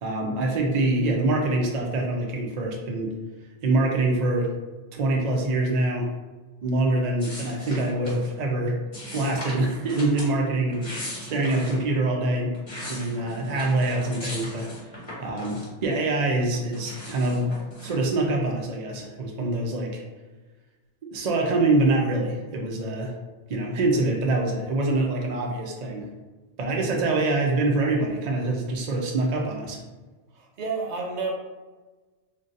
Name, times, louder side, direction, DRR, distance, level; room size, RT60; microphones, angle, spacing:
voice 1, 0.0-3.1 3.6-4.5 4.9-6.1 6.6-8.8 9.1-10.9 11.3-12.5 12.9-14.9 15.2-17.5 17.8-20.0 21.1-23.1 23.5-26.0 26.6-29.8, right 2 dB, 50° right, 0 dB, 0.5 m, -25 dB
sound 1, 7.2-8.3 8.9-10.3 10.7-11.8 12.3-15.9 16.3-18.0, equal, 25° left, 0.9 m, -38 dB
voice 2, 30.3-31.3, right 4 dB, 70° right, 0 dB, 0.9 m, -30 dB
2.5 x 2.3 x 3.8 m, 1.2 s
omnidirectional pair, 1.2 m